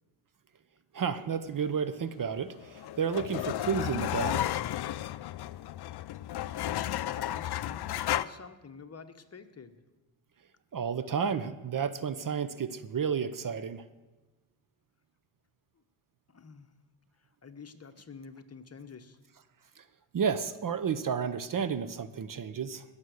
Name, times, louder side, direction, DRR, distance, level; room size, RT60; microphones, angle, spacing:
voice 1, 0.9-4.6 10.7-13.8 19.8-19.9 20.1-22.8, right 6 dB, 45° right, 14 dB, 0.8 m, -31 dB
sound 1, 2.4-8.2, left 13 dB, 55° left, 0.5 m, -33 dB
voice 2, 6.6-9.8 15.7-15.8 16.3-16.7 17.2-19.2, left 5 dB, 30° left, 8 dB, 1.1 m, -49 dB
20.0 x 7.1 x 6.5 m, 1.2 s
cardioid pair, 80°, 48 cm